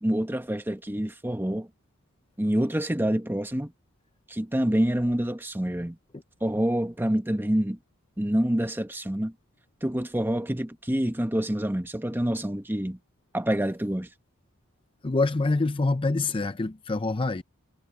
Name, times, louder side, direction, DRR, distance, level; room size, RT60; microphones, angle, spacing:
voice 1, 0.0-1.7 2.4-3.7 4.3-6.0 6.4-7.8 8.2-9.3 9.8-13.0 13.3-14.1, equal, 10° right, 1.1 m, -27 dB
voice 2, 15.0-17.4, left 3 dB, 25° left, 0.5 m, -25 dB
head